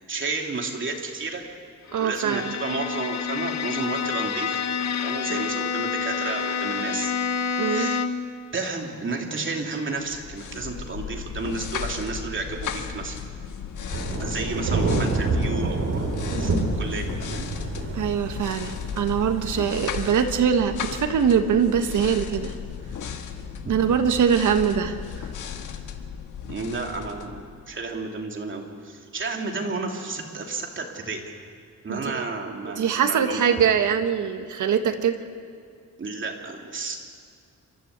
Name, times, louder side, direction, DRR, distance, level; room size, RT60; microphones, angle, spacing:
voice 1, 0.1-1.4 2.0-4.6 5.0-7.1 7.4-8.0 8.5-13.2 14.2-16.0 16.4-17.5 23.6-23.7 26.4-31.2 31.8-33.4 36.0-37.0, right 3 dB, 40° right, 1 dB, 3.0 m, -32 dB
Bowed string instrument, 1.9-8.3, left 6 dB, 60° left, 1.1 m, -28 dB
voice 2, 1.9-2.5 5.3-5.4 7.6-7.9 17.9-22.5 23.7-25.0 31.9-32.2 32.7-35.2, right 7 dB, 80° right, 7 dB, 1.6 m, -23 dB
sound 1, 10.1-27.9, left 7 dB, 90° left, 1.5 m, -35 dB
Thunder / Rain, 13.9-20.2, right 3 dB, 55° right, 3.6 m, -27 dB
28.5 x 13.5 x 8.3 m, 2.2 s
cardioid pair, 120°, 30 cm